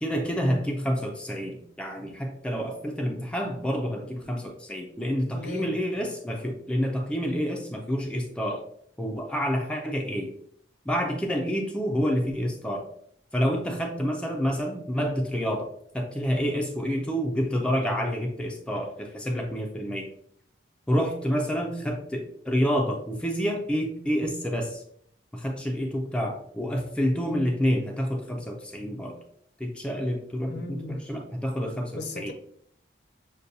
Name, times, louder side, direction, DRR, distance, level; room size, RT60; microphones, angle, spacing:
voice 1, 0.0-8.6 9.0-10.3 10.9-12.9 13.3-20.1 20.9-24.8 25.3-29.2 29.6-32.3, equal, 5° left, 1 dB, 0.4 m, -28 dB
voice 2, 5.3-5.7 30.5-31.0 31.9-32.3, left 2 dB, 60° left, 5 dB, 0.6 m, -37 dB
6.5 x 2.2 x 2.7 m, 0.66 s
head